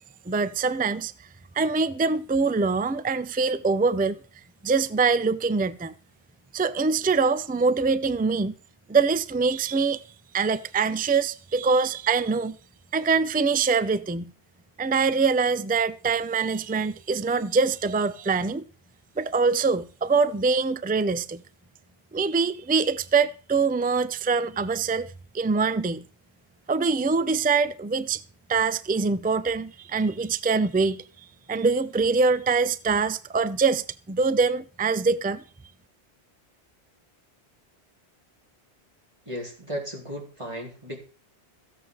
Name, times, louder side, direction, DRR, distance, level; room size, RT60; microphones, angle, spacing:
voice 1, 0.3-1.1 1.5-4.2 4.6-5.9 6.5-8.5 8.9-10.0 10.3-12.6 12.9-14.3 14.8-18.6 19.2-21.4 22.1-26.0 26.7-28.2 28.5-31.0 31.5-35.4, right 4 dB, 10° right, 0.4 m, -24 dB
voice 2, 39.3-41.0, equal, 25° right, 4.2 m, -35 dB
15.5 x 7.7 x 6.8 m
omnidirectional pair, 1.1 m